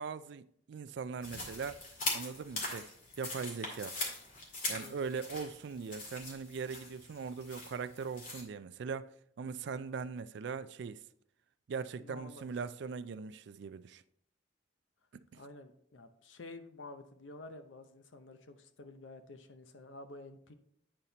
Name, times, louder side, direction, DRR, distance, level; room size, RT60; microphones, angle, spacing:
voice 1, 0.0-1.8 2.1-2.9 3.2-4.0 4.7-11.0 11.7-14.0 15.3-15.4, right 5 dB, 65° right, 0.3 m, -40 dB
sound 1, 1.2-8.4, left 2 dB, 45° left, 2.0 m, -41 dB
voice 2, 4.7-5.0 11.9-12.5 15.3-20.5, left 2 dB, 80° left, 0.7 m, -50 dB
8.9 x 4.2 x 4.0 m
head